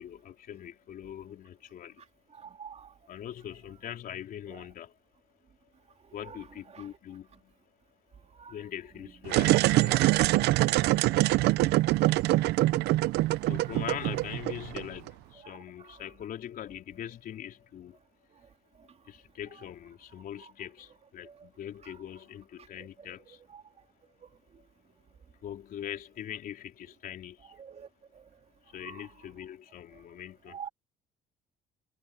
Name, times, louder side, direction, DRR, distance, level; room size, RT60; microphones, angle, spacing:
voice 1, 0.0-2.0 3.1-5.0 6.1-7.6 8.1-8.2 8.5-10.1 11.6-11.7 12.4-12.5 13.1-13.2 13.5-18.0 19.0-23.4 24.6-24.7 25.4-27.6 28.6-30.6, left 10 dB, 60° left, 4.0 m, -42 dB
sound 1, 9.2-15.1, right 17 dB, 85° right, 0.6 m, -24 dB
voice 2, 27.6-27.9 28.8-29.1 30.5-30.7, right 7 dB, 40° right, 3.7 m, -45 dB
cardioid pair, 110°, 17 cm